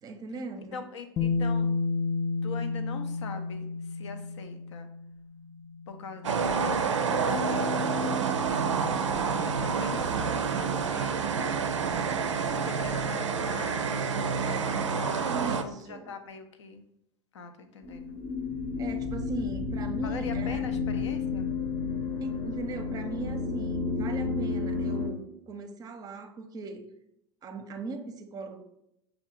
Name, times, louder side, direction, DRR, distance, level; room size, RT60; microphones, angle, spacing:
voice 1, 0.0-0.8 15.3-16.2 18.8-20.6 22.2-26.9 27.4-28.6, right 4 dB, 25° right, 7 dB, 0.6 m, -39 dB
voice 2, 0.6-1.7 2.4-4.9 5.9-8.9 9.3-11.6 12.5-16.9 17.3-18.2 20.0-21.5, left 4 dB, 75° left, 7 dB, 0.6 m, -43 dB
Bass guitar, 1.2-7.2, left 4 dB, 20° left, 0.4 m, -32 dB
sound 1, 6.2-15.6, right 5 dB, 80° right, 0.4 m, -28 dB
sound 2, 17.8-25.1, left 4 dB, 40° left, 0.8 m, -31 dB
6.1 x 2.3 x 3.7 m, 0.78 s
figure-of-eight pair, 80°, 15 cm